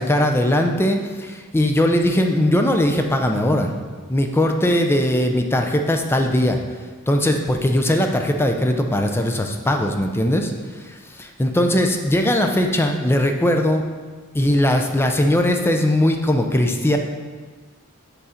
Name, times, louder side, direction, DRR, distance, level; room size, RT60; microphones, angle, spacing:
voice 1, 0.0-3.7 4.1-6.6 7.1-10.5 10.8-13.8 14.3-17.0, left 1 dB, 10° left, 4 dB, 0.5 m, -19 dB
6.9 x 3.7 x 5.6 m, 1.4 s
head